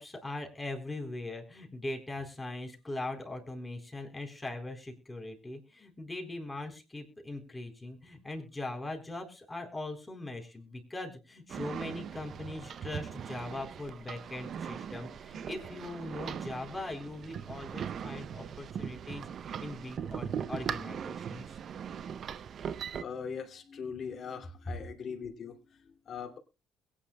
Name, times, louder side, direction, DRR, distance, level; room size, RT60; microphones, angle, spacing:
voice 1, 0.0-21.6, left 2 dB, 15° left, 4.2 m, -41 dB
sound 1, 11.5-23.0, right 8 dB, 55° right, 0.6 m, -40 dB
voice 2, 22.9-26.4, left 6 dB, 50° left, 2.7 m, -41 dB
22.0 x 10.0 x 2.3 m
hypercardioid pair, 60°, 0 cm